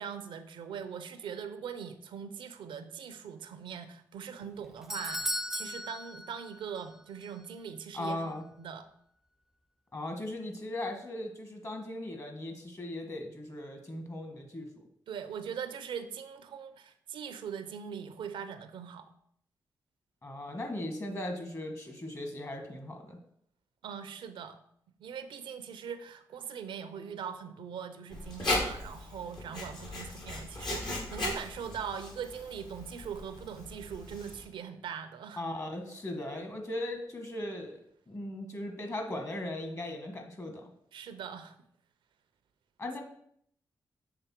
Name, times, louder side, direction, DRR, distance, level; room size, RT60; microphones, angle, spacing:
voice 1, 0.0-8.2 8.6-8.9 15.1-19.1 23.8-24.6 25.0-35.4 40.9-41.5, right 7 dB, 80° right, 10 dB, 0.5 m, -41 dB
Doorbell, 4.4-6.9 7.2-7.3 8.0-8.1, equal, 5° right, 0.4 m, -37 dB
voice 2, 7.9-8.4 9.9-14.8 20.2-23.2 35.4-37.7 38.1-40.7 42.8-43.0, left 1 dB, 35° left, 4 dB, 1.6 m, -38 dB
Writing, 28.1-34.4, left 2 dB, 65° left, 1.9 m, -37 dB
6.8 x 3.4 x 4.4 m, 0.68 s
supercardioid pair, 40°, 8 cm